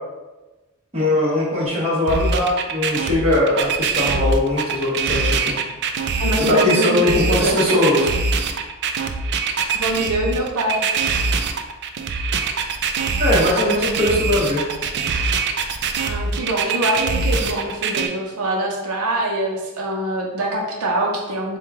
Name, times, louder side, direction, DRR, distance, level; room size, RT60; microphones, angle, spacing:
voice 1, 0.9-5.5 6.5-8.0 13.2-14.6, left 1 dB, 30° right, -6 dB, 1.2 m, -20 dB
sound 1, 2.1-18.1, right 4 dB, 50° right, 0.3 m, -23 dB
voice 2, 6.2-7.8 9.7-10.8 16.0-21.6, right 1 dB, 85° right, -1 dB, 0.7 m, -24 dB
4.7 x 2.3 x 3.6 m, 1.1 s
head